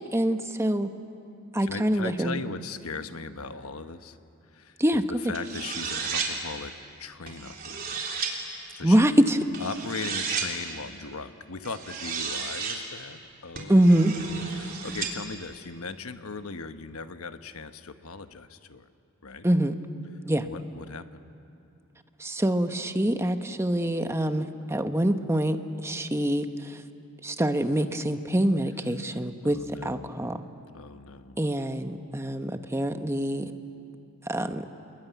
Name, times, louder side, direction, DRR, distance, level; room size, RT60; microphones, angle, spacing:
voice 1, 0.1-0.9 1.5-2.4 4.8-5.0 8.8-9.4 13.7-14.1 19.4-19.8 20.2-20.5 22.2-25.6 25.8-26.8 27.2-30.4 31.4-33.5 34.2-34.7, right 1 dB, 10° right, 8 dB, 1.0 m, -25 dB
voice 2, 1.6-4.2 4.5-6.7 7.0-8.0 8.7-9.1 9.6-13.8 14.1-18.9 19.2-19.5 20.4-21.2 29.4-30.3 30.7-31.4, left 4 dB, 85° left, 9 dB, 1.1 m, -39 dB
sound 1, 5.3-6.3 7.3-8.3 9.5-10.5 11.6-12.8 13.5-15.1, right 5 dB, 45° right, 3.5 m, -33 dB
28.5 x 21.5 x 9.3 m, 2.7 s
head